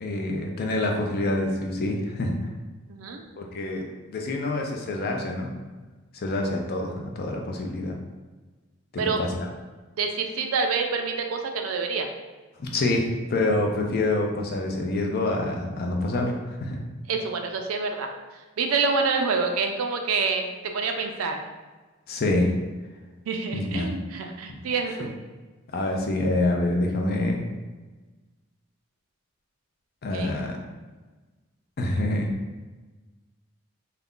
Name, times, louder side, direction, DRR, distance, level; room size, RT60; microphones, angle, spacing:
voice 1, 0.0-2.3 3.4-5.5 6.2-7.9 8.9-9.3 12.6-16.8 22.1-22.5 23.5-23.9 25.7-27.4 30.0-30.6 31.8-32.3, left 2 dB, 50° left, 1 dB, 0.5 m, -26 dB
voice 2, 2.9-3.2 9.0-9.2 10.0-12.1 17.1-18.1 18.6-21.4 23.3-25.1 30.1-30.3, right 4 dB, 85° right, 4 dB, 0.4 m, -27 dB
2.4 x 2.1 x 3.6 m, 1.3 s
head